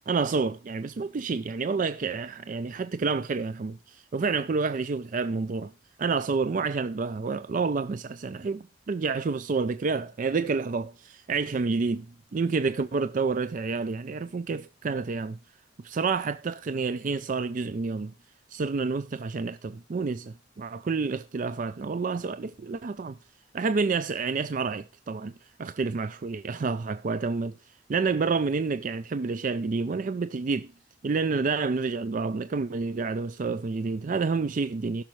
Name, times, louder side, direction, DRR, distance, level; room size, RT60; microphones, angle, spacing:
voice 1, 0.1-5.7 6.0-15.4 15.8-18.1 18.5-23.2 23.5-27.6 27.9-30.7 31.0-35.0, right 4 dB, 40° right, 0.4 m, -29 dB
16.5 x 6.3 x 3.1 m
head